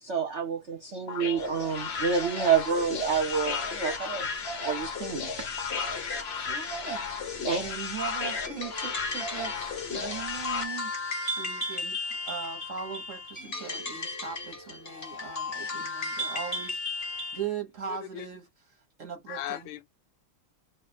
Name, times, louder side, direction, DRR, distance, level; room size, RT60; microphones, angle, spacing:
voice 1, 0.0-4.3 4.6-5.5 7.4-7.6, right 6 dB, 75° right, 0.6 m, -28 dB
sound 1, 1.1-10.6, left 5 dB, 70° left, 0.6 m, -34 dB
voice 2, 6.3-7.1 7.6-10.9 11.2-19.7, right 7 dB, 45° right, 1.2 m, -40 dB
sound 2, 8.4-17.5, left 2 dB, 30° left, 0.7 m, -35 dB
voice 3, 17.9-18.3 19.3-19.8, left 13 dB, 85° left, 1.5 m, -37 dB
3.2 x 2.5 x 4.2 m
omnidirectional pair, 2.3 m